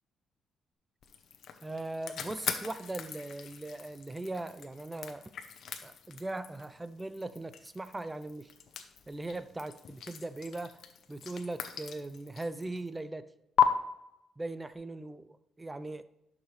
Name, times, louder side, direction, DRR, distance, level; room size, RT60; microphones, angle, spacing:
sound 1, 1.0-12.9 13.6-13.7, left 9 dB, 65° left, 0.9 m, -37 dB
voice 1, 1.6-5.3 5.8-8.5 9.1-10.8 11.1-13.3 14.4-16.0, right 2 dB, 15° right, 13 dB, 0.5 m, -39 dB
11.0 x 6.0 x 3.3 m, 0.88 s
cardioid pair, 90°, 0 cm